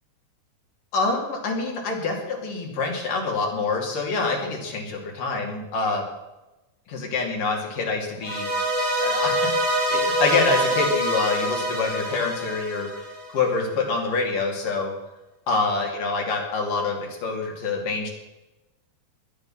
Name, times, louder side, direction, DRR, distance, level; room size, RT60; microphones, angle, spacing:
voice 1, 0.9-6.0 6.9-8.5 9.0-9.3 9.9-12.9 13.3-14.9 15.5-18.1, left 4 dB, 60° left, 0 dB, 4.1 m, -26 dB
sound 1, 8.2-13.5, equal, 55° right, 5.1 m, -25 dB
21.5 x 8.7 x 5.7 m, 1.0 s
omnidirectional pair, 4.5 m